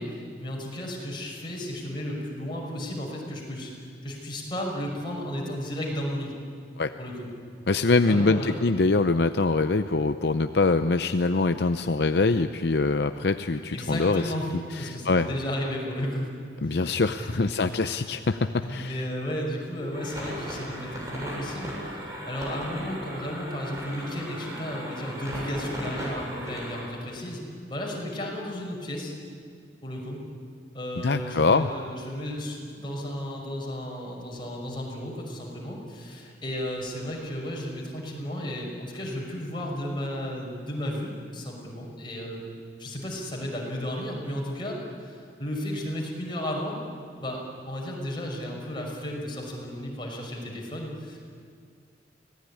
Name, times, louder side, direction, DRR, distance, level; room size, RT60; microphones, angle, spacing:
voice 1, 0.0-6.3 7.0-7.3 7.9-8.6 13.7-14.5 14.8-16.3 16.6-18.0 18.6-27.4 27.7-29.1 29.8-30.2 30.7-42.4 42.8-46.8 47.2-51.2, equal, 30° left, -2 dB, 5.9 m, -34 dB
voice 2, 7.7-14.3 14.8-15.3 16.6-19.0 31.0-31.7, left 3 dB, 65° left, 9 dB, 0.6 m, -24 dB
Static R us, 19.9-26.8, equal, 20° right, 7.5 m, -37 dB
25.0 x 18.5 x 9.9 m, 2.2 s
head